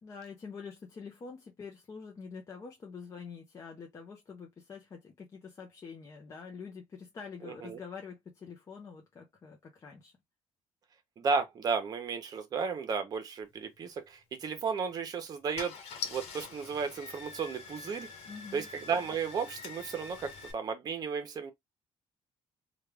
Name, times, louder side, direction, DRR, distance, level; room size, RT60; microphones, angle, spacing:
voice 1, 0.0-10.1 18.3-18.7, left 5 dB, 30° left, 0.7 m, -46 dB
voice 2, 7.4-7.8 11.2-15.8 16.1-18.1 18.5-21.5, right 5 dB, 40° right, 0.9 m, -34 dB
Car / Engine starting, 14.5-14.7 15.3-15.4 15.6-20.5, left 5 dB, 85° left, 1.2 m, -44 dB
3.2 x 2.4 x 3.4 m
cardioid pair, 155°, 10 cm